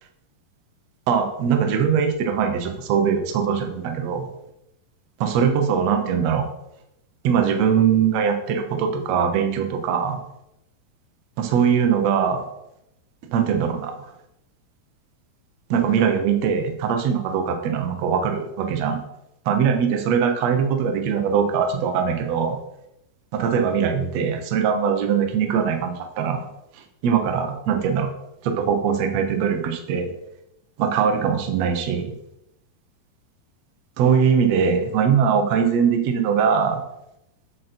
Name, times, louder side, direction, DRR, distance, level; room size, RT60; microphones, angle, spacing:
voice 1, 1.1-4.3 5.2-6.5 7.2-10.2 11.4-12.4 13.3-14.0 15.7-19.0 19.5-22.6 23.3-26.5 27.0-28.1 28.4-30.1 30.8-32.1 34.0-36.8, right 7 dB, 70° right, 5 dB, 1.6 m, -21 dB
8.2 x 6.6 x 4.4 m, 0.84 s
omnidirectional pair, 4.4 m